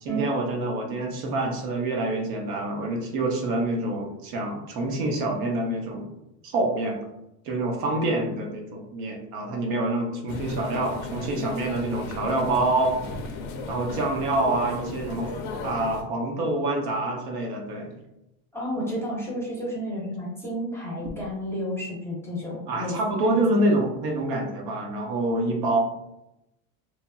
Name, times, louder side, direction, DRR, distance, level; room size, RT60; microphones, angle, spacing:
voice 1, 0.0-6.1 6.4-7.0 7.4-13.0 13.7-15.3 15.6-17.9 22.7-25.8, right 2 dB, 60° right, 0 dB, 0.8 m, -26 dB
sound 1, 10.3-16.0, left 3 dB, 55° left, 0.6 m, -35 dB
voice 2, 18.5-23.4, equal, 5° left, -5 dB, 0.7 m, -31 dB
3.0 x 2.5 x 2.3 m, 0.88 s
supercardioid pair, 125°, 42 cm